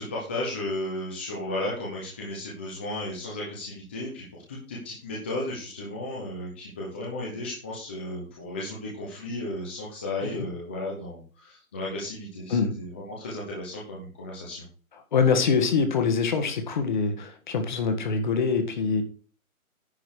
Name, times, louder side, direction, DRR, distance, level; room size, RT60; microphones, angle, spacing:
voice 1, 0.0-14.6, left 1 dB, 10° left, -4 dB, 0.7 m, -34 dB
voice 2, 15.1-19.0, left 5 dB, 35° left, 7 dB, 1.6 m, -24 dB
10.5 x 5.2 x 6.4 m, 0.39 s
hypercardioid pair, 170°, 42 cm